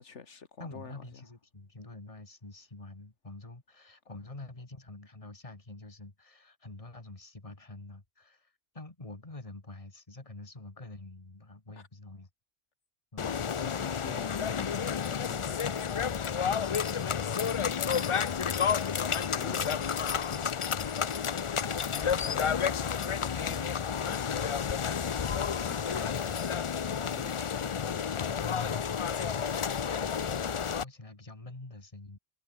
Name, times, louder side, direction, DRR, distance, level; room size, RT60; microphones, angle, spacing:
voice 1, 0.0-1.3 11.8-11.9 13.2-17.6 19.1-19.9 21.6-25.1 25.7-28.7, left 5 dB, 85° left, 1.9 m, -48 dB
voice 2, 0.6-12.3 13.1-13.3 17.9-18.8 19.2-21.1 21.6-22.0 28.5-32.2, left 2 dB, 30° left, 2.5 m, -47 dB
sound 1, 13.2-30.8, left 7 dB, 50° left, 0.4 m, -31 dB
omnidirectional pair, 1.2 m